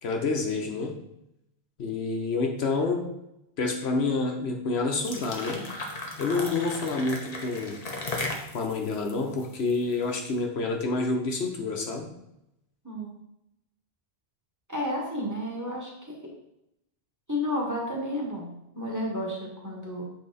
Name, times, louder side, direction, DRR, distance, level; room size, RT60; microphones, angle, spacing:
voice 1, 0.0-1.0 1.8-3.1 3.6-5.6 6.2-7.8 8.5-12.1, left 3 dB, 80° left, 2 dB, 1.2 m, -28 dB
sound 1, 4.9-10.1, left 2 dB, 40° left, 1.0 m, -36 dB
voice 2, 12.8-13.2 14.7-16.2 17.3-20.0, left 1 dB, 15° right, -4 dB, 1.8 m, -32 dB
7.7 x 4.2 x 4.1 m, 0.83 s
omnidirectional pair, 1.1 m